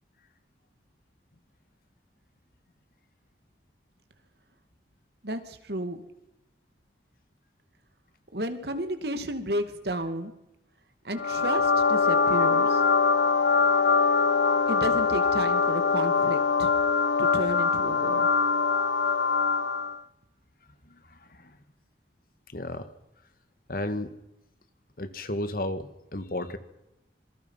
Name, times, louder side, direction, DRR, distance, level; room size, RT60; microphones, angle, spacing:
voice 1, 5.2-6.0 8.3-10.3 11.0-12.8 14.7-16.7 17.2-18.3, right 1 dB, 65° right, 8 dB, 2.4 m, -32 dB
sound 1, 11.2-20.0, left 5 dB, 80° left, 0.9 m, -23 dB
voice 2, 21.1-21.6 22.5-22.9 23.7-24.1 25.0-26.6, left 1 dB, 50° left, 11 dB, 1.8 m, -33 dB
26.5 x 23.0 x 5.8 m, 0.93 s
head